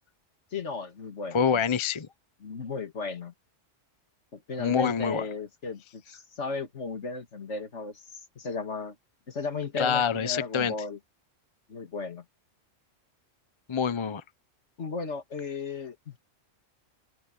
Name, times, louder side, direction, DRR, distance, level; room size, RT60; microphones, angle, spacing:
voice 1, 0.5-1.6 2.4-3.3 4.3-9.0 9.3-11.0 11.7-12.2 14.8-16.2, left 4 dB, 60° left, 2.2 m, -35 dB
voice 2, 1.3-2.1 4.6-5.3 9.8-10.7 13.7-14.2, left 6 dB, 30° left, 0.6 m, -26 dB
open air
omnidirectional pair, 1.3 m